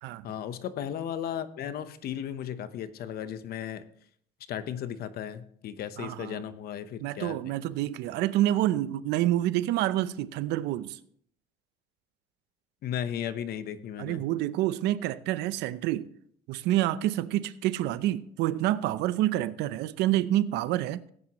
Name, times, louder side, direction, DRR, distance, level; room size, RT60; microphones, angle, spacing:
voice 1, 0.2-3.8 4.5-7.4 12.8-14.2, left 9 dB, 65° left, 0.9 m, -35 dB
voice 2, 6.0-6.4 7.0-11.0 14.0-16.1 16.5-21.0, right 14 dB, 90° right, 0.6 m, -28 dB
17.0 x 9.5 x 3.0 m
cardioid pair, 110°, 17 cm